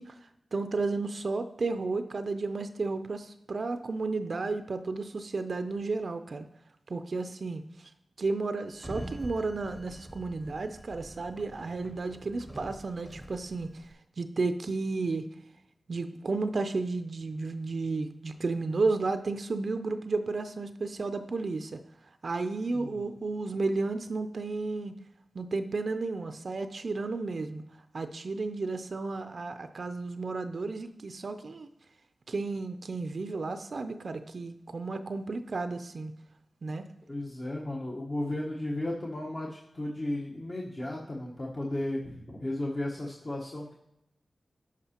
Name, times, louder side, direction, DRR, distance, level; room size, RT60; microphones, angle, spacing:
voice 1, 0.0-6.5 6.9-7.9 8.2-13.9 14.2-15.3 15.9-21.8 22.2-24.9 25.3-27.6 27.9-31.7 32.3-36.1 36.6-36.8, right 3 dB, 65° right, 9 dB, 0.4 m, -33 dB
Sliding door, 8.7-13.9, right 1 dB, 10° right, 0.7 m, -45 dB
voice 2, 37.1-43.7, left 1 dB, 45° left, -4 dB, 1.2 m, -34 dB
10.5 x 4.8 x 2.9 m, 0.83 s
cardioid pair, 45°, 0 cm